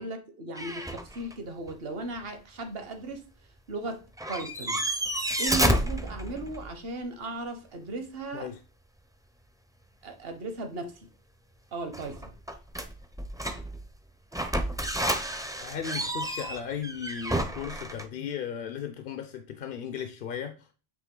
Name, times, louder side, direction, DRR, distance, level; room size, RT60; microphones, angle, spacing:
voice 1, 0.0-3.3 3.7-4.0 4.3-4.8 5.4-8.5 10.0-11.1 11.7-12.3, right 2 dB, 65° right, 1.3 m, -36 dB
sound 1, 0.5-1.3 1.7-1.8 3.9-4.0 4.2-6.7 11.9-13.8 14.3-18.0, right 1 dB, 5° right, 0.4 m, -30 dB
voice 2, 15.6-20.7, left 8 dB, 60° left, 0.8 m, -36 dB
8.4 x 3.1 x 3.7 m
omnidirectional pair, 1.1 m